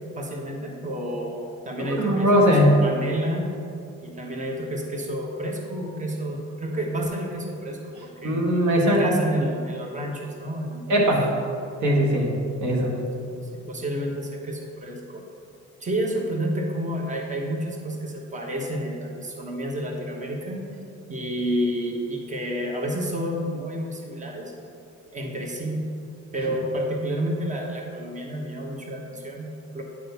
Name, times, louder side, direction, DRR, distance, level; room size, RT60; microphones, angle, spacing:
voice 1, 0.2-3.5 4.0-8.4 8.7-11.1 13.0-15.2 15.8-20.7 21.1-24.5 25.1-25.9 26.3-29.8, equal, 25° right, 1 dB, 1.2 m, -30 dB
voice 2, 1.9-2.7 8.2-9.1 10.9-11.3 11.8-12.3 12.6-12.9, equal, 70° right, -1 dB, 1.6 m, -20 dB
9.8 x 3.9 x 5.7 m, 2.5 s
cardioid pair, 90°, 30 cm